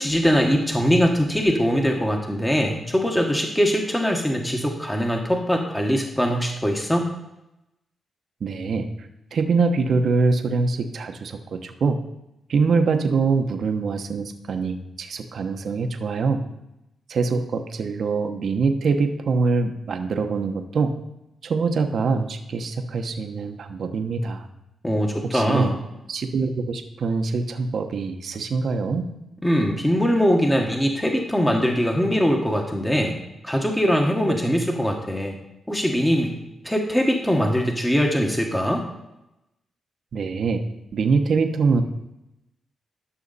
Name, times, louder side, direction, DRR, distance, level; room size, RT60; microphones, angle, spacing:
voice 1, 0.0-7.1 24.8-25.7 29.4-33.1 33.4-35.4 35.7-36.3 36.6-38.8, equal, 10° left, 2 dB, 1.4 m, -22 dB
voice 2, 8.4-12.0 12.5-16.4 17.1-20.9 21.4-24.5 25.2-25.7 26.1-29.1 40.1-40.6 40.9-41.8, right 4 dB, 65° right, 6 dB, 1.0 m, -24 dB
12.5 x 6.4 x 4.1 m, 0.90 s
cardioid pair, 75°, 0 cm